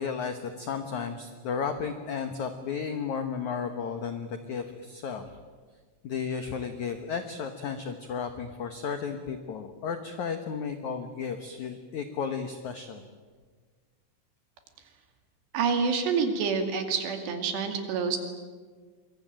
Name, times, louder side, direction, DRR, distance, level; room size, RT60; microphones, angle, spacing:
voice 1, 0.0-5.3 6.0-13.0, left 6 dB, 90° left, 7 dB, 1.6 m, -33 dB
voice 2, 15.5-18.2, right 5 dB, 65° right, 6 dB, 4.4 m, -27 dB
25.5 x 22.5 x 9.1 m, 1.5 s
omnidirectional pair, 5.5 m